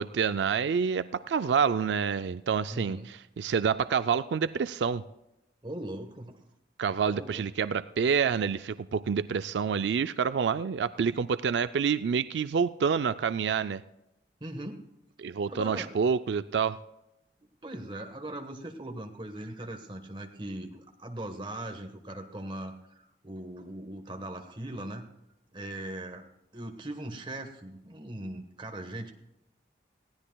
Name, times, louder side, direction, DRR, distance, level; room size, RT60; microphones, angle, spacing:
voice 1, 0.0-5.0 6.8-13.8 15.2-16.8, right 6 dB, 85° right, 13 dB, 0.4 m, -28 dB
voice 2, 2.7-3.1 5.6-6.4 7.1-7.4 14.4-14.9 15.5-15.9 17.6-25.1 25.5-26.3 26.5-29.1, right 1 dB, 25° right, 5 dB, 1.2 m, -39 dB
20.0 x 15.5 x 2.3 m, 0.87 s
head